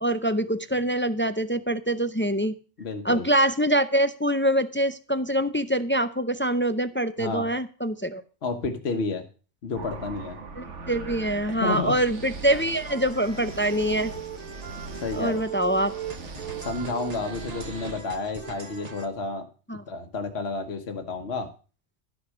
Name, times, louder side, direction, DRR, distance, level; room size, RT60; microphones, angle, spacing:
voice 1, 0.0-2.5 3.0-8.2 10.6-14.1 15.1-15.9 19.7-19.8, right 1 dB, 15° left, 11 dB, 0.3 m, -24 dB
voice 2, 2.8-3.2 7.2-7.5 8.4-9.2 9.6-10.4 11.6-11.9 15.0-15.4 16.6-19.5 19.9-21.5, left 3 dB, 60° left, 4 dB, 1.4 m, -30 dB
sound 1, 9.7-18.0, right 3 dB, 70° right, 1.6 m, -40 dB
sound 2, 12.5-19.1, right 8 dB, 35° right, 1.2 m, -39 dB
12.5 x 6.4 x 6.2 m, 0.36 s
omnidirectional pair, 1.3 m